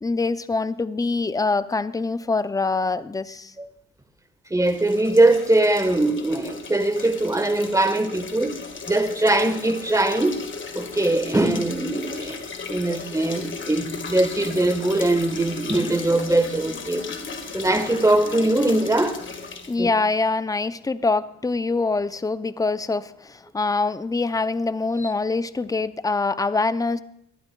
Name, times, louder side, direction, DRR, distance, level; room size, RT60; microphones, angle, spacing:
voice 1, 0.0-3.5 19.7-27.0, left 3 dB, 10° left, 0.5 m, -24 dB
voice 2, 4.5-10.4 10.7-12.4 12.7-17.1 17.5-19.2 19.8-19.9, right 2 dB, 10° right, 1.3 m, -21 dB
sound 1, 4.6-19.8, left 4 dB, 40° left, 1.7 m, -36 dB
20.5 x 12.0 x 2.3 m
cardioid pair, 90°, 30 cm